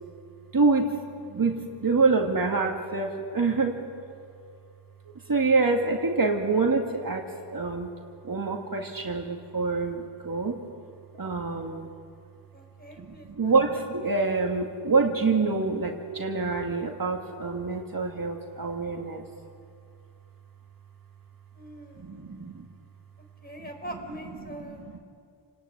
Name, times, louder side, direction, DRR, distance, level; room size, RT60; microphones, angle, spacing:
voice 1, 0.5-1.0 1.2-3.8 5.3-7.9 8.2-10.6 11.2-11.9 13.0-19.3 22.0-22.7 24.4-25.0, right 4 dB, 45° right, 1 dB, 2.1 m, -26 dB
voice 2, 12.5-13.6 21.5-22.2 23.4-24.8, right 1 dB, 20° left, 2 dB, 4.8 m, -42 dB
29.0 x 19.5 x 9.1 m, 2.4 s
wide cardioid pair, 120°, 48 cm